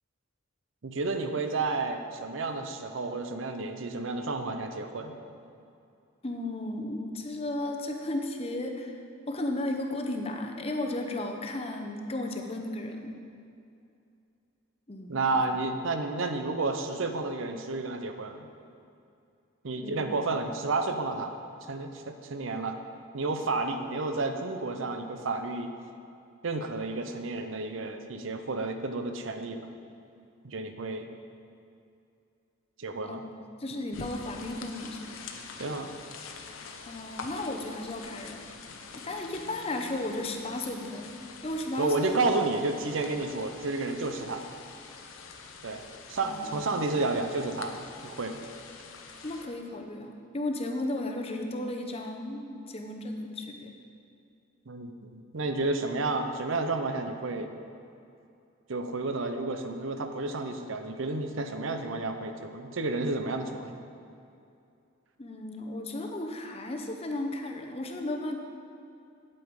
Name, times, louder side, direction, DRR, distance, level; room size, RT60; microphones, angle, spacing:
voice 1, 0.8-5.2 15.1-18.5 19.6-22.8 23.1-25.7 26.4-29.7 30.4-31.1 32.8-33.2 35.6-35.9 41.8-44.4 45.6-45.8 46.1-48.4 54.7-57.5 58.7-63.8, right 3 dB, 70° right, 7 dB, 0.7 m, -31 dB
voice 2, 6.2-13.2 14.9-15.4 19.8-20.0 33.0-35.2 36.9-38.4 38.9-41.1 41.4-42.1 46.2-46.5 49.2-53.7 65.2-68.4, left 1 dB, 30° left, 3 dB, 0.8 m, -34 dB
sound 1, 33.9-49.5, left 4 dB, 80° left, 0.8 m, -45 dB
8.6 x 8.6 x 4.8 m, 2.6 s
head